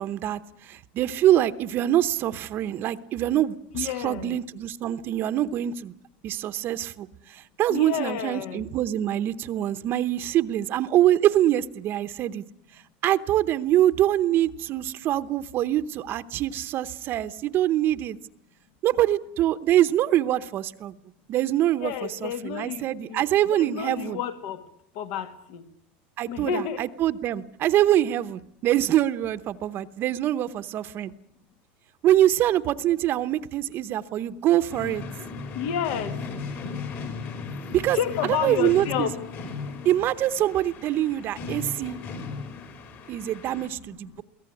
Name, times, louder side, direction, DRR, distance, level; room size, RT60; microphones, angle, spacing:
voice 1, 0.0-5.9 6.2-12.4 13.0-18.2 18.8-20.9 21.3-21.9 22.2-24.2 26.2-31.1 32.0-35.0 37.7-38.0 38.3-39.1 39.8-42.0 43.1-44.2, right 12 dB, 40° right, 0.8 m, -24 dB
voice 2, 3.7-4.4 7.7-8.6 21.8-24.6 25.0-25.6 26.3-26.8 35.5-36.2 37.9-39.1 43.6-44.2, left 8 dB, 65° left, 2.1 m, -31 dB
sound 1, 34.7-43.7, left 4 dB, 45° left, 5.3 m, -36 dB
22.5 x 18.0 x 9.7 m
supercardioid pair, 145°, 6 cm